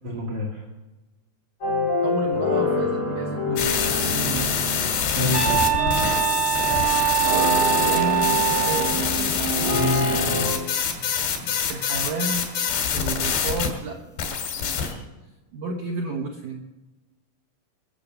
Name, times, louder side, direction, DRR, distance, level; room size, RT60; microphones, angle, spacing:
voice 1, 0.0-0.6 5.1-5.7 9.7-10.5 10.8-11.1 11.4-11.5, left 2 dB, 45° right, -2 dB, 1.5 m, -28 dB
sound 1, 1.6-10.5, left 1 dB, 40° left, 8.5 m, -27 dB
voice 2, 2.0-4.6 7.2-9.4 11.7-15.0 15.5-16.6, right 3 dB, 70° right, 2 dB, 1.8 m, -32 dB
sound 2, 3.6-13.7 14.2-14.9, left 7 dB, 70° left, 4.1 m, -25 dB
sound 3, 5.3-9.0, right 12 dB, 20° left, 0.6 m, -23 dB
22.0 x 7.6 x 6.8 m, 1.1 s
omnidirectional pair, 5.0 m